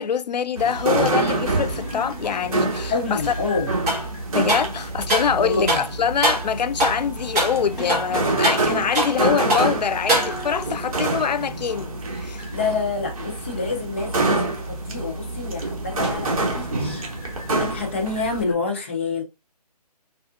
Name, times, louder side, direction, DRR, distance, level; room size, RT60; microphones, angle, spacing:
voice 1, 0.0-3.2 4.3-12.4, left 7 dB, 85° left, 0.4 m, -24 dB
sound 1, 0.6-18.4, right 2 dB, 55° right, 1.1 m, -27 dB
sound 2, 1.3-18.5, left 1 dB, ahead, 1.4 m, -41 dB
voice 2, 2.9-3.8 5.4-5.8 12.5-17.1 17.5-19.2, left 4 dB, 20° left, 0.5 m, -27 dB
sound 3, 3.9-4.1 4.5-5.3 5.7-5.9 6.2-6.5 6.8-7.0 7.3-7.6 7.9-9.2 9.5-9.7 10.1-10.6, right 1 dB, 25° right, 1.3 m, -23 dB
3.5 x 2.4 x 2.4 m
hypercardioid pair, 160°, 21 cm